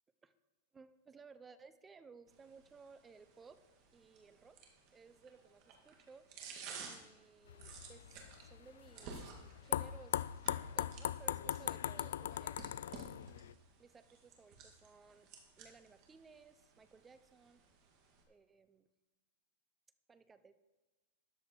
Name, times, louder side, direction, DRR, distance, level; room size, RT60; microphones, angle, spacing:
voice 1, 0.7-3.6 3.9-4.6 4.9-8.1 8.4-9.3 9.6-10.3 10.8-12.7 13.8-15.3 15.6-17.6 18.3-18.9 20.1-20.5, right 5 dB, 10° right, 12 dB, 0.6 m, -59 dB
sound 1, 2.3-18.2, right 5 dB, 35° right, 2.0 m, -55 dB
sound 2, 7.5-13.5, left 10 dB, 75° left, 0.3 m, -40 dB
13.0 x 10.5 x 4.5 m, 1.2 s
supercardioid pair, 165°, 0 cm